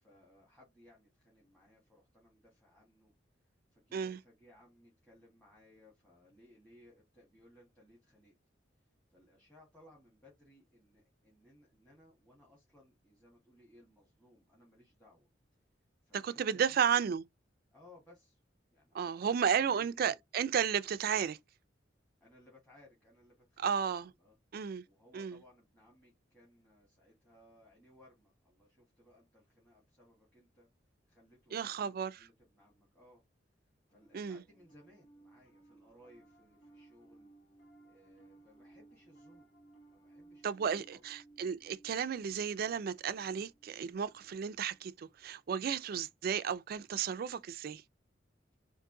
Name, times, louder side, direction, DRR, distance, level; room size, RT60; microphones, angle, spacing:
voice 1, 0.0-3.1 3.4-8.4 8.8-15.3 16.0-16.8 17.7-18.4 18.7-20.2 22.2-23.9 24.2-24.4 24.8-30.7 31.1-33.2 33.9-37.3 37.8-39.5 39.9-41.0, left 1 dB, 5° left, 1.5 m, -63 dB
voice 2, 16.2-17.2 18.9-21.4 23.6-24.1 24.5-24.8 25.1-25.4 31.5-32.1 34.1-34.4 40.4-47.8, right 7 dB, 50° right, 0.3 m, -33 dB
Piano, 33.9-45.4, right 2 dB, 90° left, 1.2 m, -62 dB
3.6 x 2.6 x 3.7 m
head